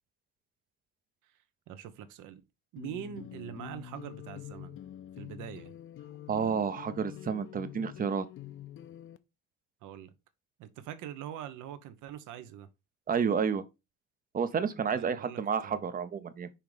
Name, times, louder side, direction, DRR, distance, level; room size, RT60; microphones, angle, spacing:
voice 1, 1.7-2.4 2.7-4.8 5.2-5.7 9.8-10.1 10.6-12.7 14.9-15.8, right 10 dB, 75° right, 1.0 m, -43 dB
sound 1, 2.8-9.2, left 12 dB, 45° left, 0.5 m, -46 dB
voice 2, 6.3-8.3 13.1-13.6 14.3-16.5, right 6 dB, 30° right, 0.6 m, -30 dB
5.9 x 3.6 x 4.8 m
cardioid pair, 145°, 31 cm